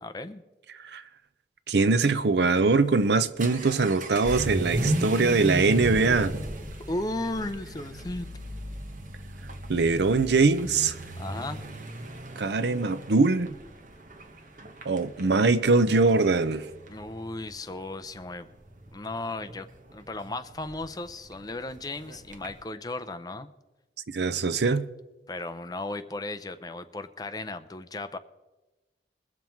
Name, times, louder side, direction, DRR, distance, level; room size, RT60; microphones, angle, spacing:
voice 1, 0.0-0.4 6.8-8.3 11.2-11.6 16.9-18.5 18.9-23.5 25.3-28.2, left 2 dB, 20° left, 0.5 m, -35 dB
voice 2, 1.7-6.3 9.7-11.0 12.4-13.6 14.9-16.7 24.1-24.9, right 3 dB, 75° right, 0.6 m, -22 dB
Vehicle / Accelerating revving vroom, 2.8-22.6, right 1 dB, 45° right, 1.1 m, -36 dB
21.5 x 7.3 x 4.6 m
head